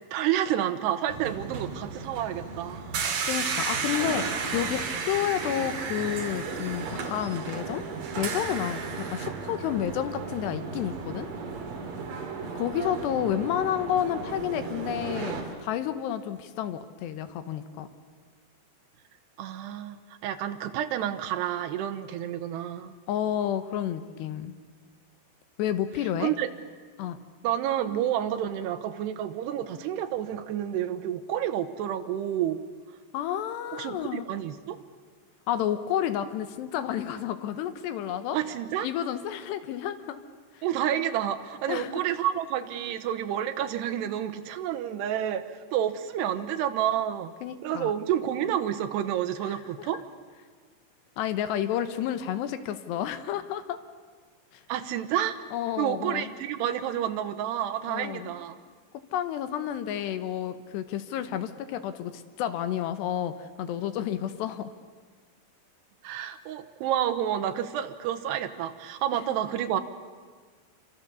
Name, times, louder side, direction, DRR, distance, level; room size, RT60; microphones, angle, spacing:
voice 1, 0.1-3.2 19.4-22.9 26.2-26.5 27.4-32.6 33.7-34.8 38.3-38.9 40.6-47.3 47.6-50.0 54.7-55.4 55.8-58.6 66.0-69.8, right 10 dB, 80° right, 8 dB, 3.2 m, -29 dB
sound 1, 1.1-15.4, right 5 dB, 55° right, 3.7 m, -34 dB
voice 2, 3.3-7.8 8.1-11.3 12.6-17.9 23.1-24.5 25.6-26.3 27.0-27.2 33.1-34.2 35.5-38.4 38.8-40.2 40.5-40.6 41.7-41.9 47.4-47.9 49.5-49.9 51.2-53.8 55.5-56.3 57.9-58.3 59.1-64.7, left 10 dB, 80° left, 10 dB, 3.2 m, -30 dB
28.0 x 24.5 x 7.1 m, 1.5 s
omnidirectional pair, 4.9 m